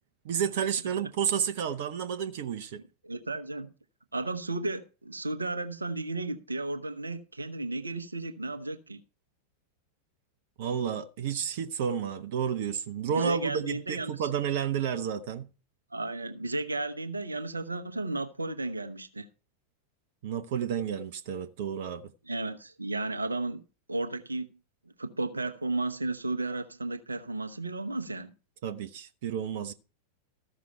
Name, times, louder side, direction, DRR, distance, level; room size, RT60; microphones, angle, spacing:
voice 1, 0.2-2.8 10.6-15.5 20.2-22.1 28.6-29.7, right 8 dB, 50° right, 0.9 m, -31 dB
voice 2, 3.0-3.7 4.1-9.0 13.1-14.3 15.9-19.3 22.3-23.6 23.9-24.5 25.0-28.3, right 2 dB, 80° right, 1.0 m, -33 dB
14.0 x 6.2 x 5.7 m
figure-of-eight pair, 90°, 0 cm